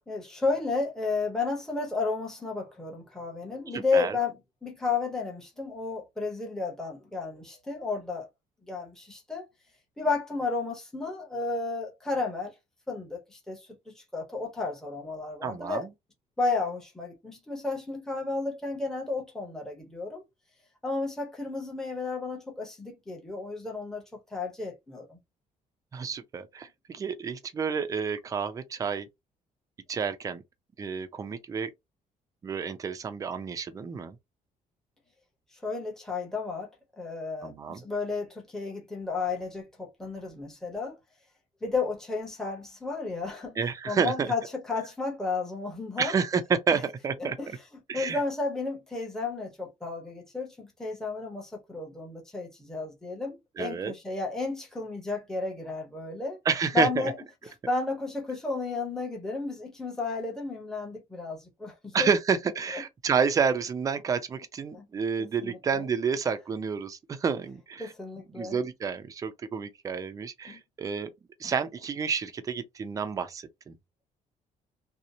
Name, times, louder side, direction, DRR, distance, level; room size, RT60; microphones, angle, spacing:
voice 1, 0.1-4.3 4.6-8.3 8.7-9.5 10.0-12.5 12.9-15.9 16.4-20.2 20.8-25.2 35.6-36.7 37.0-40.9 41.6-43.6 43.9-46.1 46.7-46.8 47.2-47.5 47.9-56.4 56.7-57.1 57.4-62.1 64.7-64.9 65.2-65.8 67.8-68.6 70.5-70.6, left 3 dB, 5° left, 0.8 m, -32 dB
voice 2, 3.7-4.2 15.4-15.9 25.9-29.1 29.9-30.4 30.8-31.7 32.4-34.2 37.4-37.8 43.6-44.3 46.0-47.6 47.9-48.2 53.6-53.9 56.5-57.1 61.9-67.9 68.3-71.1 71.4-73.7, right 6 dB, 25° right, 0.4 m, -29 dB
2.8 x 2.0 x 2.5 m
cardioid pair, 140°, 14 cm